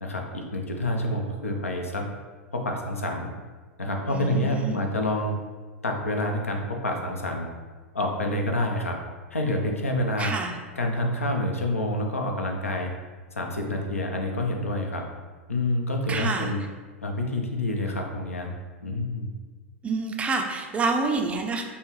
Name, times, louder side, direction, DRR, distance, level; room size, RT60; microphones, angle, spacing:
voice 1, 0.0-2.1 2.5-3.3 3.8-5.3 5.8-7.5 7.9-9.0 9.3-10.3 10.8-12.9 13.3-15.0 15.5-16.6 17.0-18.5 18.8-19.3, left 1 dB, 85° left, 2 dB, 0.5 m, -27 dB
voice 2, 4.1-4.8 10.2-10.5 16.1-16.5 19.8-21.6, right 3 dB, 15° right, 3 dB, 0.4 m, -28 dB
5.5 x 2.2 x 3.0 m, 1.4 s
figure-of-eight pair, 95°, 7 cm